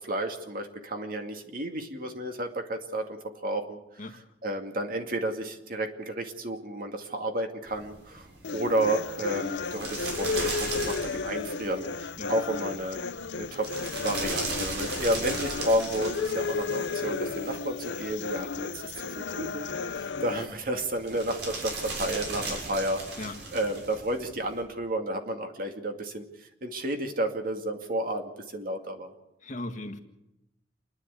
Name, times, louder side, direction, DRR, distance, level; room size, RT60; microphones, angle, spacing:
voice 1, 0.0-3.8 4.4-13.0 13.4-19.7 19.9-23.2 23.5-29.1, right 1 dB, 55° right, 4 dB, 2.3 m, -31 dB
sound 1, 7.7-24.6, right 3 dB, 80° right, 6.5 m, -38 dB
sound 2, 8.4-20.5, left 4 dB, 90° left, 0.7 m, -34 dB
voice 2, 29.4-30.0, left 2 dB, 45° left, 6 dB, 1.8 m, -38 dB
28.5 x 11.0 x 8.3 m, 0.90 s
head